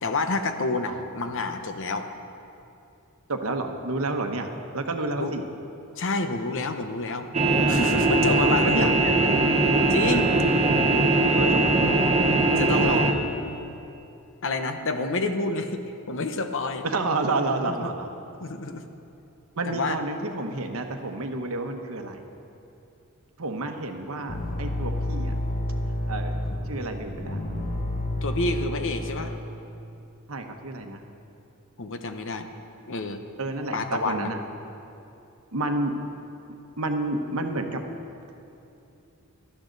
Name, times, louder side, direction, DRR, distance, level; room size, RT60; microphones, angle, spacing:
voice 1, 0.0-2.1 5.2-5.3 6.0-7.3 7.7-9.3 9.9-10.4 12.5-13.2 14.4-16.8 17.8-18.0 18.4-18.8 19.7-20.0 28.2-29.3 31.8-32.5 32.9-33.3 33.7-34.3, left 3 dB, 60° left, 7 dB, 0.9 m, -28 dB
voice 2, 3.3-5.4 8.5-8.9 11.4-11.7 12.6-13.0 16.8-18.1 19.6-22.2 23.4-25.3 26.1-26.3 26.7-27.4 30.3-31.0 33.4-34.4 35.5-36.0 36.8-37.8, right 2 dB, 70° right, 5 dB, 1.1 m, -30 dB
sound 1, 7.3-13.1, right 2 dB, 30° right, 1.0 m, -21 dB
sound 2, 24.3-29.4, left 1 dB, 40° left, 1.1 m, -30 dB
18.0 x 12.5 x 4.0 m, 2.8 s
head